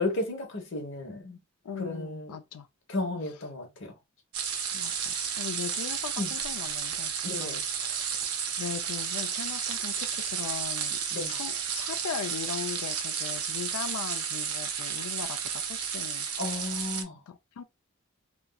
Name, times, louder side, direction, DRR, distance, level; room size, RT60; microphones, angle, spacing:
voice 1, 0.0-1.4 1.8-2.3 2.9-3.9 6.2-6.3 7.2-7.6 11.1-11.4 16.4-17.2, left 2 dB, 55° left, 1.0 m, -33 dB
voice 2, 1.6-2.7 4.7-8.1 8.6-16.5 17.3-17.6, left 7 dB, 85° left, 0.4 m, -39 dB
sound 1, 4.3-17.0, right 7 dB, 75° right, 0.6 m, -32 dB
3.0 x 2.5 x 2.2 m
head